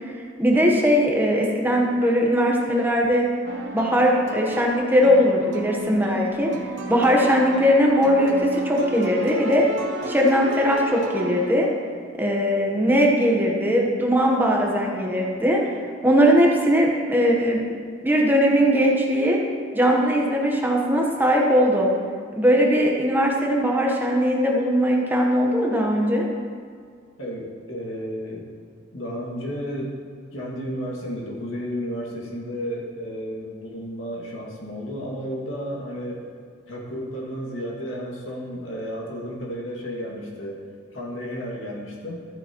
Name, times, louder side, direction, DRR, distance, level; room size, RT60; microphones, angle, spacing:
voice 1, 0.4-3.2 3.7-6.5 6.9-9.7 10.1-11.7 12.2-15.6 16.0-17.6 18.0-19.4 19.7-21.9 22.4-26.2, equal, 10° right, -1 dB, 1.0 m, -20 dB
sound 1, 3.4-11.5, right 2 dB, 75° right, 0.9 m, -33 dB
voice 2, 27.2-28.5 28.9-29.9 30.3-36.2 36.7-40.6 40.9-42.3, equal, 85° left, -3 dB, 2.1 m, -32 dB
13.5 x 9.0 x 3.0 m, 2.1 s
head